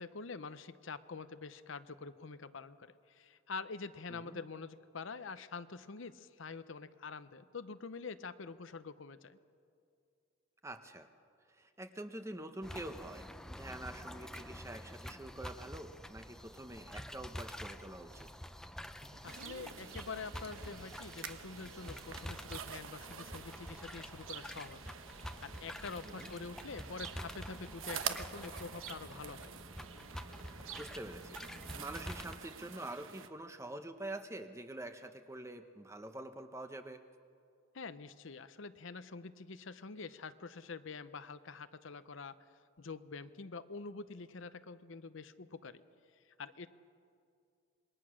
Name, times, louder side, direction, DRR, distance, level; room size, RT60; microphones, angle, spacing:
voice 1, 0.0-9.4 19.2-24.8 25.1-29.5 37.7-42.3 42.8-45.8 46.4-46.7, left 4 dB, 70° left, 12 dB, 0.7 m, -46 dB
voice 2, 4.1-4.4 10.6-11.1 11.5-18.3 26.0-26.3 30.8-31.4 31.7-37.0, right 1 dB, 15° right, 8 dB, 0.9 m, -46 dB
sound 1, 12.6-32.4, equal, 5° left, 0.5 m, -48 dB
sound 2, 18.2-27.4 32.9-33.3, right 1 dB, 60° right, 3.6 m, -64 dB
sound 3, 19.2-33.3, right 7 dB, 80° right, 1.0 m, -47 dB
27.0 x 21.0 x 6.3 m, 2.4 s
head